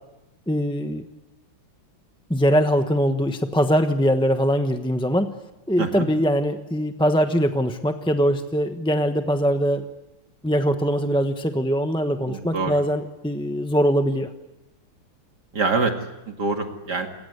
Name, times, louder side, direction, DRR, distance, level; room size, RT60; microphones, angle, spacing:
voice 1, 0.5-1.0 2.3-5.4 5.7-9.8 10.4-14.3, equal, 5° left, 6 dB, 0.8 m, -22 dB
voice 2, 12.3-12.8 15.5-15.9 16.3-17.1, right 4 dB, 55° right, 4 dB, 2.6 m, -25 dB
28.5 x 23.0 x 8.2 m, 0.95 s
omnidirectional pair, 2.2 m